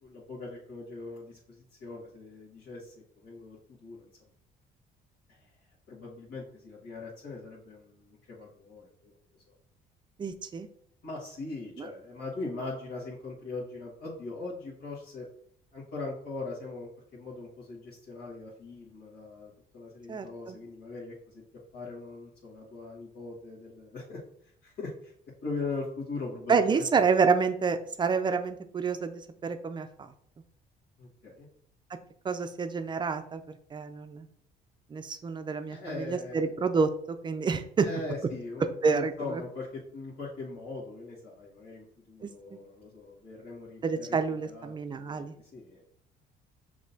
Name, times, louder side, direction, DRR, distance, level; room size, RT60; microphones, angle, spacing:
voice 1, 0.0-4.0 5.9-9.1 11.0-15.2 15.7-21.4 21.7-24.2 24.6-25.1 25.4-26.8 31.0-31.5 35.7-36.5 37.8-45.8, left 3 dB, 80° left, -7 dB, 1.6 m, -40 dB
voice 2, 10.2-10.7 11.8-11.9 20.1-20.6 26.5-29.9 32.2-34.3 34.9-37.9 38.8-39.4 42.2-42.6 43.8-45.3, right 5 dB, 25° right, 8 dB, 0.4 m, -28 dB
6.2 x 2.9 x 2.7 m, 0.68 s
cardioid pair, 110°, 17 cm